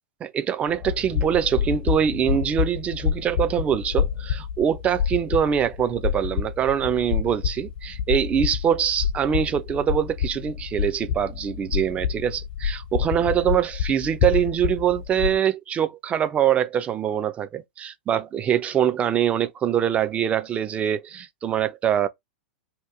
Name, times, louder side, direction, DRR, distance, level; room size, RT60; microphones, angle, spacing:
voice 1, 0.2-22.1, right 9 dB, 25° right, 0.5 m, -24 dB
sound 1, 0.7-15.4, left 8 dB, 60° left, 0.7 m, -28 dB
2.9 x 2.5 x 3.5 m
figure-of-eight pair, 100°, 5 cm